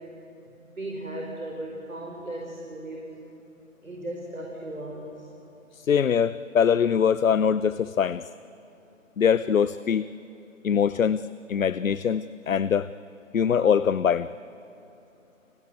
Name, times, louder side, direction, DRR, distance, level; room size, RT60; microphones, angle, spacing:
voice 1, 0.6-3.1 3.8-5.3, right 1 dB, 90° right, -1 dB, 4.6 m, -36 dB
voice 2, 5.7-8.2 9.2-10.1 10.6-12.9 13.3-14.3, left 7 dB, 80° left, 16 dB, 0.7 m, -23 dB
29.5 x 18.0 x 9.0 m, 3.0 s
figure-of-eight pair, 140°, 40 cm